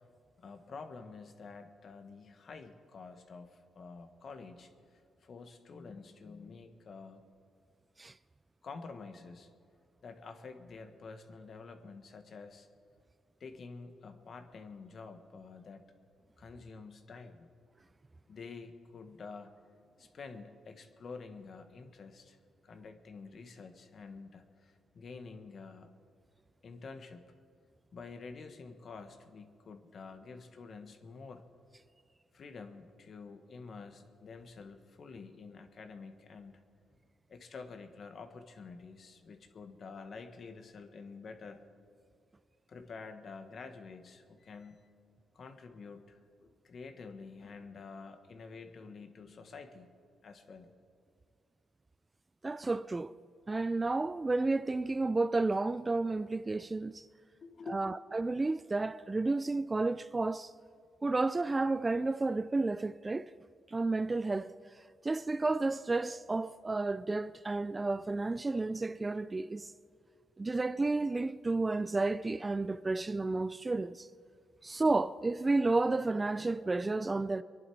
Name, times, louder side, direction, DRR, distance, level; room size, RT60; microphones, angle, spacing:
voice 1, 0.4-7.3 8.6-9.5 10.0-12.7 13.4-15.9 16.4-17.5 18.3-19.5 20.0-22.4 22.6-25.9 26.6-27.3 27.9-31.4 32.3-36.6 37.3-41.6 42.7-44.9 45.3-49.9 50.2-50.7 57.4-57.8, left 4 dB, 50° left, 1.4 m, -48 dB
voice 2, 52.4-53.1 53.5-57.1 57.7-60.5 61.0-63.3 63.7-64.5 65.0-69.7 70.4-74.1 74.6-77.4, right 3 dB, 20° right, 0.3 m, -31 dB
24.5 x 11.0 x 4.6 m
cardioid pair, 100°, 0 cm